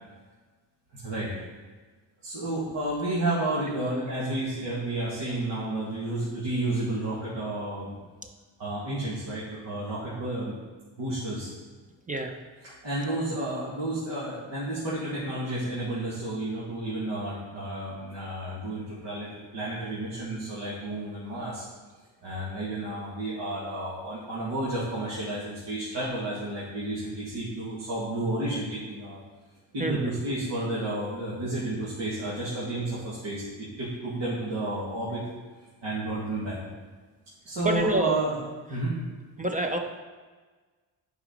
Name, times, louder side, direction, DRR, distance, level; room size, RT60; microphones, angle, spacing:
voice 1, 0.9-1.4 2.2-8.0 8.6-10.6 11.0-11.5 12.6-21.6 22.2-29.2 29.7-35.2 35.8-36.6 37.5-38.4 38.7-39.0, right 1 dB, 65° right, -9 dB, 2.2 m, -31 dB
voice 2, 29.8-30.1 37.6-38.2 39.4-39.8, right 2 dB, 15° right, 3 dB, 0.6 m, -27 dB
8.2 x 5.0 x 5.2 m, 1.4 s
cardioid pair, 105°, 46 cm